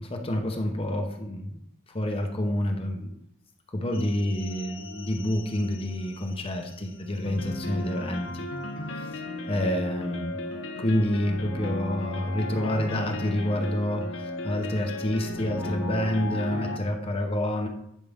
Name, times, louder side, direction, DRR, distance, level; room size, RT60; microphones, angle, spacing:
voice 1, 0.0-1.6 1.9-3.2 3.7-8.4 9.0-9.2 9.5-10.4 10.8-17.7, left 1 dB, 30° left, 3 dB, 0.8 m, -28 dB
sound 1, 3.9-16.8, left 1 dB, 80° left, 0.8 m, -36 dB
10.5 x 5.3 x 3.5 m, 0.75 s
head